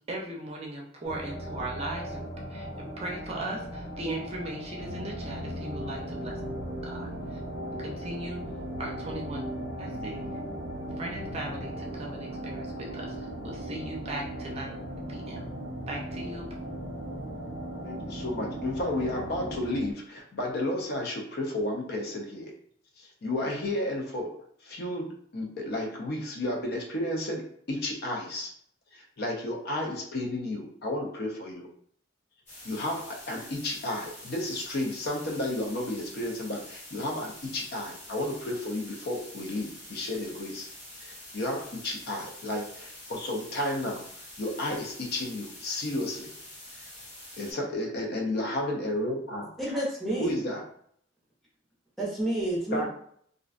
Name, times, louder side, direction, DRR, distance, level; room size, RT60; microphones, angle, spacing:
voice 1, 0.1-6.4 6.8-7.4 7.8-8.4 8.8-9.5 9.8-10.3 11.0-14.7 15.1-15.5 15.9-16.4, right 2 dB, 35° right, -1 dB, 0.5 m, -38 dB
sound 1, 1.0-19.6, left 1 dB, 85° left, 0.8 m, -40 dB
sound 2, 4.8-19.9, right 2 dB, 85° right, 0.3 m, -40 dB
voice 2, 17.8-22.5 23.0-28.5 28.9-31.7 32.6-40.7 41.0-44.1 44.4-46.3 47.4-49.5 50.2-50.6 52.7-52.9, left 1 dB, 60° left, 1 dB, 0.5 m, -32 dB
sound 3, 32.5-47.5, left 1 dB, 40° left, 1.2 m, -46 dB
voice 3, 49.6-50.3 52.0-52.9, right 1 dB, ahead, -5 dB, 0.7 m, -29 dB
2.5 x 2.1 x 2.4 m, 0.64 s
head